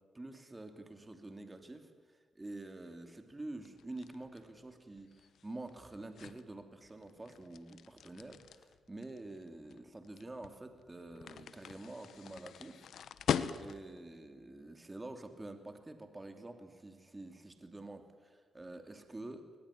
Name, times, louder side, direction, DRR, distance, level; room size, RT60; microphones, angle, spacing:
voice 1, 0.1-12.9 13.5-19.6, right 2 dB, 20° right, 7 dB, 2.8 m, -48 dB
sound 1, 3.6-14.0, left 8 dB, 75° left, 1.0 m, -42 dB
22.0 x 20.0 x 10.0 m, 1.5 s
cardioid pair, 65°, 0 cm